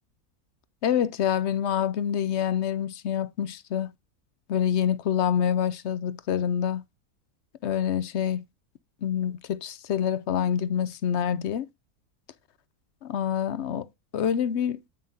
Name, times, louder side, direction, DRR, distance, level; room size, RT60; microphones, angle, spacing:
voice 1, 0.8-3.9 4.5-6.8 7.6-8.4 9.0-11.7 13.0-13.9 14.1-14.8, left 9 dB, 60° left, 0.8 m, -26 dB
8.8 x 7.3 x 2.7 m
omnidirectional pair, 1.6 m